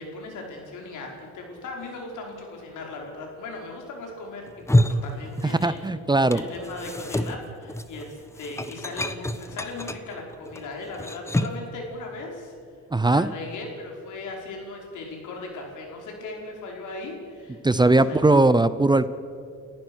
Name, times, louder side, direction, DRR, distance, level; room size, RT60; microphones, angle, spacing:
voice 1, 0.0-5.8 6.3-12.5 13.0-18.4, left 3 dB, 80° left, 0 dB, 5.1 m, -38 dB
sound 1, 4.5-5.9 6.1-11.7, left 1 dB, 10° left, 1.1 m, -28 dB
voice 2, 5.4-6.4 12.9-13.3 17.6-19.1, right 2 dB, 15° right, 14 dB, 0.7 m, -19 dB
29.5 x 15.0 x 6.3 m, 2.3 s
cardioid pair, 90°, 30 cm